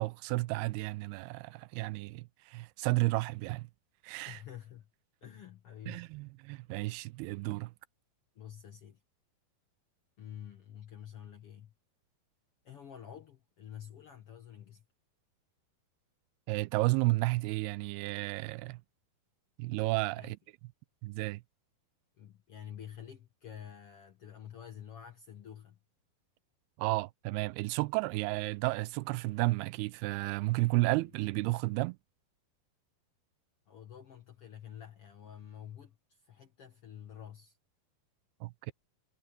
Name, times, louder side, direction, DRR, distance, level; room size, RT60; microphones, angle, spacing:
voice 1, 0.0-3.7 4.0-4.4 5.9-7.7 16.5-18.8 19.6-20.4 21.0-21.4 26.8-32.0 38.4-38.7, right 22 dB, 90° right, 2.6 m, -32 dB
voice 2, 4.2-4.9 5.2-6.0 8.3-9.0 10.2-11.7 12.6-14.8 20.1-20.3 22.2-25.8 33.7-37.6, left 9 dB, 60° left, 1.5 m, -49 dB
omnidirectional pair, 4.4 m